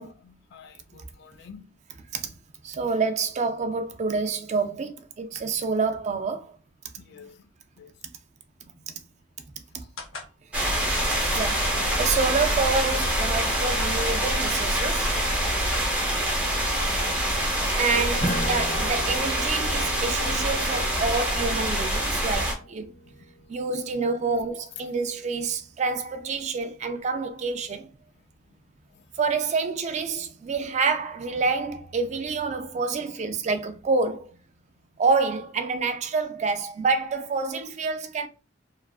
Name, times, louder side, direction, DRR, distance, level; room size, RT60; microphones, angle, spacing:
voice 1, 0.0-1.7 7.1-7.5 7.8-7.9 17.9-18.0 22.8-23.6, left 6 dB, 55° left, 0.3 m, -50 dB
voice 2, 2.6-6.5 8.6-8.9 9.7-9.8 11.2-15.1 17.7-22.9 23.5-27.9 29.2-34.3 35.0-38.3, right 4 dB, 35° right, 0.3 m, -27 dB
sound 1, 10.0-10.3 11.6-12.1 13.0-13.9 14.8-14.9 15.1-16.3, left 3 dB, 85° left, 0.7 m, -40 dB
sound 2, 10.5-22.5, right 1 dB, 5° right, 0.7 m, -25 dB
Strum, 18.2-23.1, right 1 dB, 40° left, 1.0 m, -36 dB
2.6 x 2.3 x 2.3 m
head